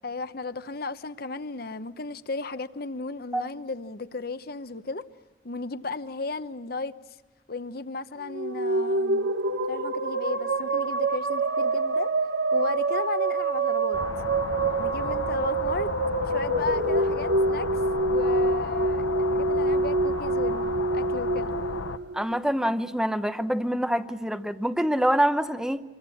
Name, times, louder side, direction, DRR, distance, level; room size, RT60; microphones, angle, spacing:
voice 1, 0.0-5.1 5.4-6.9 7.5-9.3 9.7-12.1 12.5-14.0 14.8-15.9 16.3-17.7 18.1-21.5, left 3 dB, 50° left, 0.9 m, -34 dB
sound 1, 8.2-22.7, right 2 dB, 60° right, 1.1 m, -26 dB
sound 2, 13.9-22.0, left 4 dB, 90° left, 0.9 m, -33 dB
voice 2, 22.1-25.8, equal, 5° right, 0.8 m, -25 dB
26.0 x 22.5 x 8.5 m
head